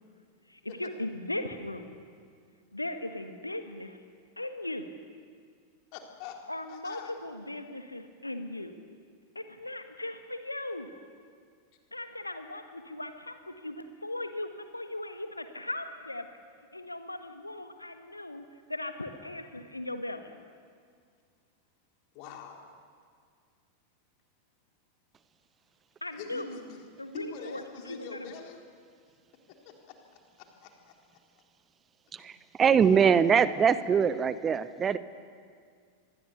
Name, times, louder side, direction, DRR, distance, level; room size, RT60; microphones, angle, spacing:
voice 1, 0.5-2.0 2.7-4.0 4.4-4.9 6.5-8.7 9.3-10.9 11.9-16.3 16.7-20.3 26.0-26.6 27.0-27.6 27.9-28.3, left 1 dB, 85° left, 7 dB, 1.4 m, -38 dB
voice 2, 5.9-6.4 6.7-7.1 22.1-22.7 26.1-26.8 27.1-28.6 29.7-29.8 30.6-30.7 32.2-32.3, left 6 dB, 45° left, 2 dB, 3.6 m, -44 dB
voice 3, 32.1-35.0, right 7 dB, 20° right, 15 dB, 0.8 m, -23 dB
25.0 x 21.0 x 6.9 m, 2.1 s
figure-of-eight pair, 90°, 0 cm